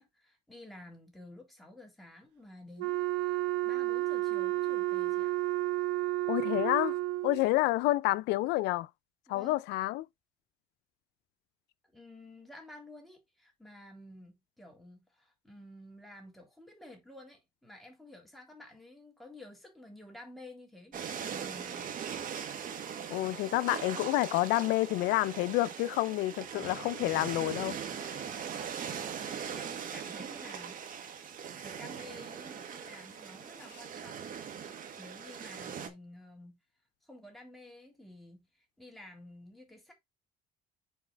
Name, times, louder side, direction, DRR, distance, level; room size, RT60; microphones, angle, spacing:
voice 1, 0.0-5.4 9.3-9.6 11.8-21.9 29.0-34.6 35.0-36.6 37.0-39.9, left 1 dB, ahead, 3.5 m, -52 dB
Wind instrument woodwind instrument, 2.8-7.5, right 17 dB, 90° right, 0.6 m, -31 dB
voice 2, 6.3-6.9 7.2-8.9 9.3-10.0 23.1-27.8, left 17 dB, 90° left, 0.4 m, -29 dB
sound 1, 20.9-35.9, right 7 dB, 55° right, 1.6 m, -40 dB
7.2 x 4.1 x 4.1 m
cardioid pair, 110°, 17 cm